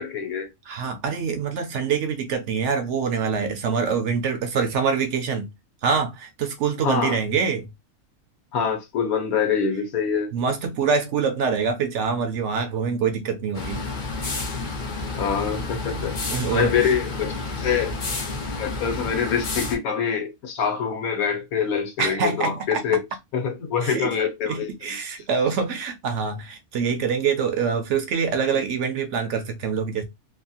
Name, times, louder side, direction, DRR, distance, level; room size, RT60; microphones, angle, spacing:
voice 1, 0.0-0.5 6.8-7.2 8.5-10.3 15.2-17.9 18.6-23.0 23.3-24.7, left 7 dB, 75° left, 1.3 m, -25 dB
voice 2, 0.7-5.5 5.8-7.7 10.3-13.9 16.3-16.9 22.0-22.8 23.8-24.1 24.4-30.0, right 6 dB, 65° right, 0.8 m, -25 dB
sound 1, 13.5-19.8, left 3 dB, 45° left, 0.7 m, -30 dB
2.9 x 2.3 x 2.6 m
omnidirectional pair, 1.5 m